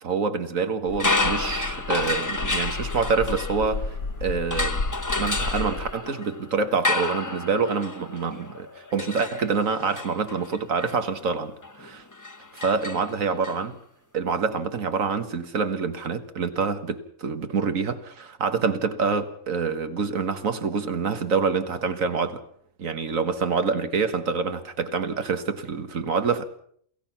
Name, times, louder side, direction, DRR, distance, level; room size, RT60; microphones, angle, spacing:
voice 1, 0.0-3.9 4.2-4.8 5.2-11.5 11.8-12.0 12.6-13.8 14.1-22.4 22.8-26.4, right 5 dB, 90° right, 1.9 m, -26 dB
sound 1, 0.9-5.9, left 3 dB, 85° left, 2.0 m, -32 dB
sound 2, 0.9-4.0 4.5-13.5, left 2 dB, 15° left, 0.8 m, -30 dB
28.0 x 16.5 x 6.0 m
omnidirectional pair, 1.4 m